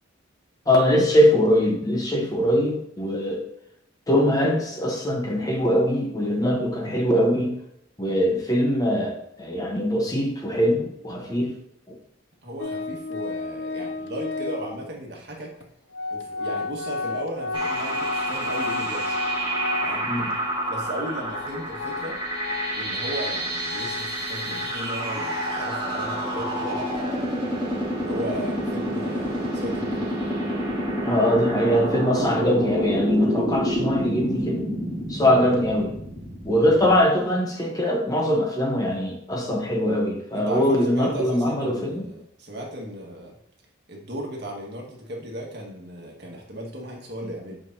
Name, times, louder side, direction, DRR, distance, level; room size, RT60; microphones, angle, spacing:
voice 1, 0.7-3.4 4.1-7.5 8.0-11.5 11.9-12.0 20.0-20.3 31.0-34.7 35.1-35.9 36.4-42.1, equal, 20° left, 1 dB, 1.0 m, -22 dB
voice 2, 12.4-15.5 16.1-19.1 19.8-20.1 20.7-22.2 22.7-27.4 28.1-30.3 40.3-43.3 43.9-47.6, right 1 dB, 60° right, -1 dB, 1.7 m, -36 dB
Organ, 12.6-14.9 15.6-15.7 15.9-20.3 20.7-20.8 21.3-25.6, left 3 dB, 75° left, 0.6 m, -33 dB
sound 1, 17.5-37.0, right 1 dB, 25° right, 1.9 m, -28 dB
8.1 x 5.0 x 2.8 m, 0.76 s
head